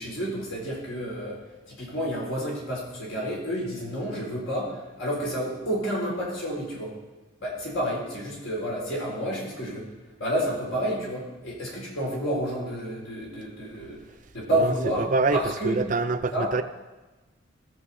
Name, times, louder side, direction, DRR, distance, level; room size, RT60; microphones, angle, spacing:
voice 1, 0.0-6.9 7.4-9.9 10.2-14.0 14.3-15.8 16.3-16.6, equal, 80° left, -4 dB, 4.1 m, -30 dB
voice 2, 15.0-15.4 15.6-16.6, right 3 dB, 40° right, 10 dB, 0.5 m, -24 dB
16.5 x 6.8 x 4.2 m, 1.2 s
head